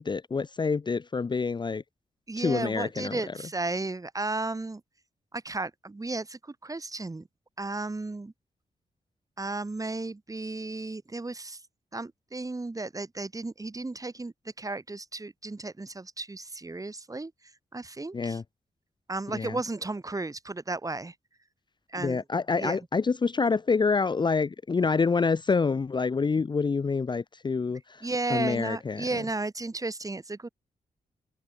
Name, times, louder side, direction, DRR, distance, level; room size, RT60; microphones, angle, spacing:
voice 1, 0.0-1.8 2.4-3.2 18.1-18.4 19.3-19.6 22.0-29.2, left 4 dB, 35° left, 0.6 m, -27 dB
voice 2, 2.3-4.8 5.3-7.3 7.6-8.3 9.4-11.6 11.9-17.3 17.7-18.4 19.1-21.1 21.9-22.2 22.6-22.8 28.0-30.5, right 2 dB, 25° right, 1.8 m, -34 dB
cardioid pair, 75°, 14 cm